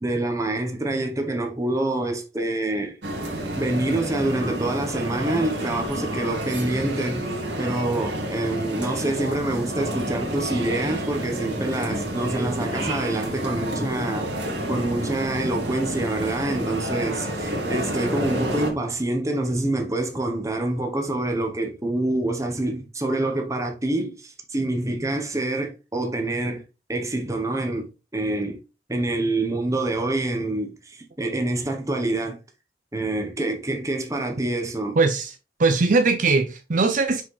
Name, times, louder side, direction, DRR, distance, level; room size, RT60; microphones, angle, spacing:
voice 1, 0.0-3.0 3.6-7.3 7.6-14.3 14.7-26.6 26.9-28.6 28.9-32.4 32.9-35.0, right 2 dB, 20° right, 1.1 m, -26 dB
sound 1, 3.0-18.7, right 1 dB, 85° right, 1.9 m, -29 dB
voice 2, 35.0-35.3 35.6-37.2, right 3 dB, 50° right, 0.6 m, -20 dB
5.8 x 5.1 x 3.3 m
head